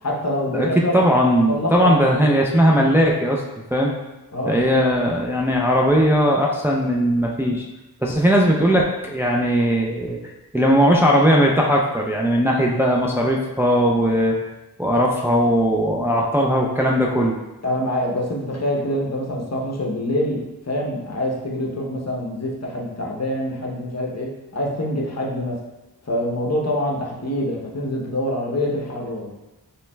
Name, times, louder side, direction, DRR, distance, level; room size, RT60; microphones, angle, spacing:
voice 1, 0.0-1.0 1.4-2.2 4.3-4.6 17.6-25.6 26.1-29.3, left 1 dB, 40° left, -1 dB, 0.9 m, -25 dB
voice 2, 0.5-3.4 3.7-3.9 4.5-7.6 8.0-10.2 10.5-14.4 14.8-17.4, equal, 5° right, -1 dB, 0.5 m, -18 dB
5.6 x 3.1 x 2.3 m, 1.0 s
wide cardioid pair, 50°, 39 cm